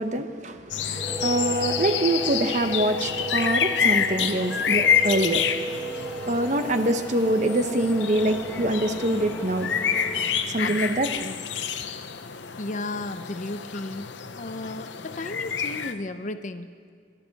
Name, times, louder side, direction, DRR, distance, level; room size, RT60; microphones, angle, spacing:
voice 1, 0.0-5.6 5.9-9.7 10.5-11.1, right 1 dB, 40° right, 8 dB, 0.8 m, -25 dB
sound 1, 0.7-15.9, left 7 dB, 85° left, 0.7 m, -28 dB
sound 2, 0.9-10.4, right 1 dB, 15° right, 1.0 m, -35 dB
sound 3, 5.7-11.3, left 1 dB, 10° left, 1.0 m, -41 dB
voice 2, 12.6-16.7, left 2 dB, 40° left, 10 dB, 0.6 m, -34 dB
22.0 x 11.5 x 4.1 m, 2.1 s
head